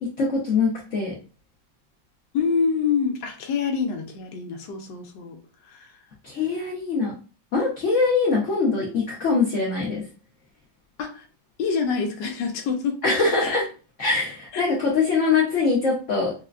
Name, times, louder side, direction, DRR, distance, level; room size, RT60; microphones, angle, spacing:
voice 1, 0.0-1.1 6.2-7.1 7.5-10.0 13.0-13.6 14.0-16.3, left 4 dB, 55° left, -4 dB, 0.9 m, -23 dB
voice 2, 2.3-5.4 5.6-5.9 11.0-11.3 11.6-13.0 13.4-13.6 14.5-14.7, left 5 dB, 75° left, 5 dB, 1.2 m, -26 dB
4.2 x 2.1 x 2.3 m, 0.35 s
omnidirectional pair, 2.1 m